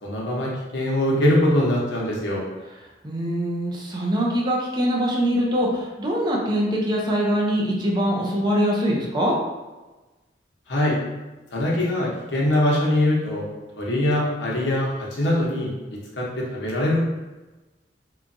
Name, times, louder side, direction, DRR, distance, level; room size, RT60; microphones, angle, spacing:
voice 1, 0.0-2.4 10.7-11.0 11.5-13.5 13.8-15.7 16.1-17.0, left 1 dB, 85° left, -4 dB, 0.8 m, -22 dB
voice 2, 3.0-9.4, equal, 25° right, -2 dB, 0.5 m, -23 dB
3.0 x 2.2 x 2.5 m, 1.1 s
head